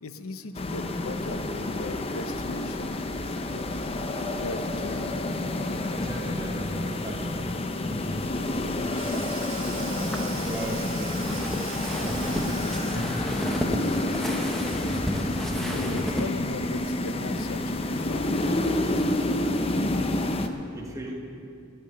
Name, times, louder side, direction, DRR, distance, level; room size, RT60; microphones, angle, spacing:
voice 1, 0.0-3.6 4.2-5.1 15.4-19.3, left 3 dB, 80° left, 10 dB, 0.7 m, -38 dB
sound 1, 0.5-20.5, left 1 dB, 25° left, 0.5 m, -29 dB
voice 2, 5.9-9.2 10.0-12.4 12.8-13.3 15.8-15.9 20.7-21.1, right 1 dB, 15° right, 0 dB, 1.3 m, -38 dB
Sink (filling or washing), 8.2-13.3, right 7 dB, 70° right, 1.4 m, -42 dB
sound 2, 10.0-16.3, equal, ahead, 0.8 m, -32 dB
14.0 x 5.9 x 9.8 m, 2.6 s
head